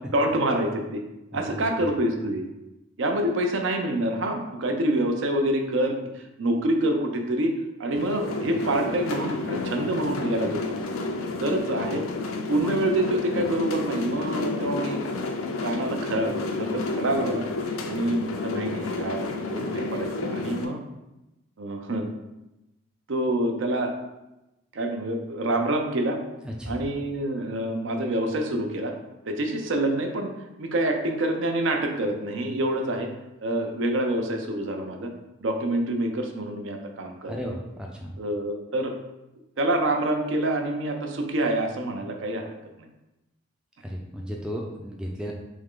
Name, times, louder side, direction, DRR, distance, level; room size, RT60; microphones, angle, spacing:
voice 1, 0.1-1.0 1.3-2.5 3.0-7.5 7.8-10.8 11.4-12.1 12.5-15.0 15.6-17.4 17.8-20.8 21.6-22.1 23.1-23.9 24.7-26.2 26.7-28.9 29.3-30.3 30.6-33.1 33.4-35.1 35.4-37.5 38.2-38.9 39.6-42.5 42.8-42.9, right 1 dB, 65° right, 3 dB, 0.5 m, -27 dB
voice 2, 1.3-1.8 26.4-26.8 37.2-38.1 43.8-45.3, equal, 5° right, -1 dB, 0.3 m, -35 dB
sound 1, 7.9-20.7, left 3 dB, 85° left, 0.5 m, -30 dB
3.6 x 3.2 x 3.6 m, 0.96 s
head